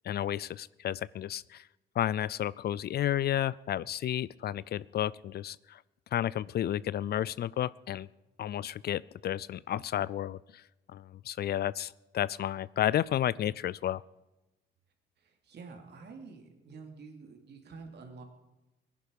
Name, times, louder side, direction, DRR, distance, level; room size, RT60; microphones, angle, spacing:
voice 1, 0.0-1.7 2.0-5.8 6.1-8.1 8.4-10.6 10.9-14.0, left 11 dB, 55° left, 21 dB, 0.4 m, -32 dB
voice 2, 15.2-18.2, right 4 dB, 60° right, 3 dB, 2.7 m, -48 dB
19.0 x 10.5 x 5.3 m, 1.0 s
cardioid pair, 90°, 20 cm